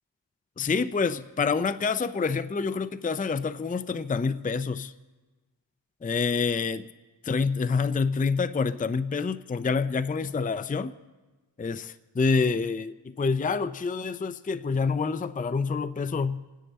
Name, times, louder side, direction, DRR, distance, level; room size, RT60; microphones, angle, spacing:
voice 1, 0.6-4.9 6.0-6.8 7.2-10.9 11.6-11.8 12.2-16.4, left 5 dB, 20° left, 13 dB, 0.5 m, -27 dB
27.5 x 10.0 x 4.1 m, 1.2 s
cardioid pair, 45°, 43 cm